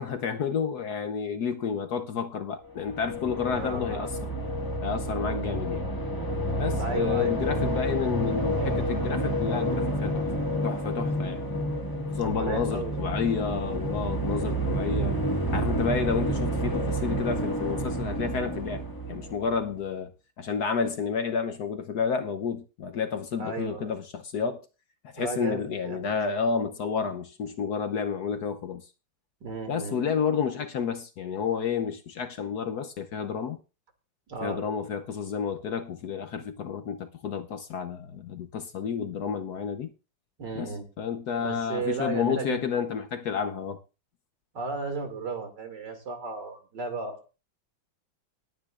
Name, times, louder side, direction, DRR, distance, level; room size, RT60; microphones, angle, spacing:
voice 1, 0.0-4.3 4.8-5.9 6.6-10.3 10.6-11.4 12.1-15.2 15.5-18.8 19.1-20.1 20.4-24.6 25.1-28.8 29.7-33.6 34.4-39.9 40.6-43.8, left 6 dB, 60° left, 1.2 m, -30 dB
sound 1, 2.7-19.7, right 1 dB, 10° left, 1.4 m, -29 dB
voice 2, 3.5-4.1 6.8-7.4 12.2-13.0 23.4-23.9 25.2-26.0 29.4-30.0 34.3-34.6 40.4-40.9 41.4-42.6 44.5-47.2, right 4 dB, 60° right, 3.0 m, -34 dB
20.0 x 9.6 x 2.5 m
omnidirectional pair, 2.2 m